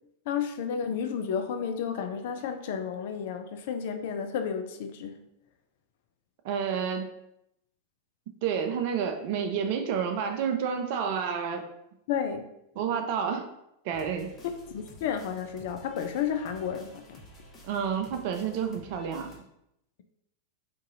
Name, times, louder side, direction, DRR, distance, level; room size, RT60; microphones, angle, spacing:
voice 1, 0.3-5.2 12.1-12.5 14.7-17.2, left 7 dB, 50° left, 6 dB, 0.4 m, -32 dB
voice 2, 6.4-7.1 8.4-11.7 12.8-13.5 13.8-14.3 17.6-19.3, right 7 dB, 50° right, 6 dB, 0.4 m, -29 dB
sound 1, 13.9-19.4, left 1 dB, 30° left, 1.0 m, -51 dB
3.7 x 2.7 x 3.9 m, 0.81 s
figure-of-eight pair, 90°, 0 cm